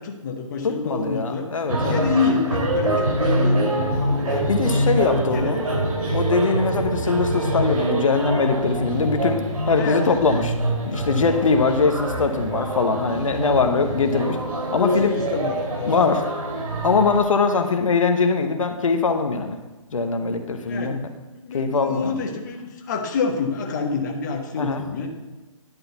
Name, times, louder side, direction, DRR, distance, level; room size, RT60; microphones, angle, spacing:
voice 1, 0.0-1.5 1.8-4.5 4.9-5.8 9.8-10.2 14.7-16.0 20.7-21.0 21.4-25.1, left 4 dB, 35° left, 2 dB, 1.0 m, -27 dB
voice 2, 0.6-2.0 4.5-5.6 6.1-9.4 9.7-10.5 10.9-14.4 14.7-15.1 15.9-16.2 16.8-19.6 19.9-21.1 21.5-22.2 24.6-24.8, left 4 dB, 70° left, 6 dB, 0.9 m, -21 dB
sound 1, 1.7-17.2, right 1 dB, 85° right, 2.6 m, -25 dB
11.0 x 3.8 x 6.9 m, 1.2 s
hypercardioid pair, 160°, 18 cm